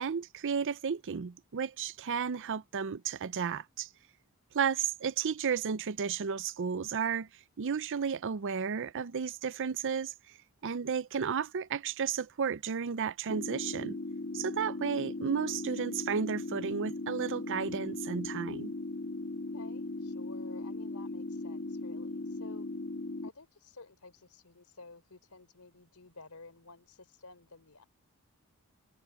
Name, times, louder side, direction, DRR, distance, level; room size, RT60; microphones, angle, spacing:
voice 1, 0.0-3.9 4.5-7.3 7.6-10.4 10.6-14.0 14.3-18.7, right 6 dB, 60° right, 0.5 m, -33 dB
sound 1, 13.3-23.3, left 2 dB, 50° left, 1.8 m, -38 dB
voice 2, 19.5-22.7 23.2-27.8, left 3 dB, 75° left, 3.6 m, -53 dB
head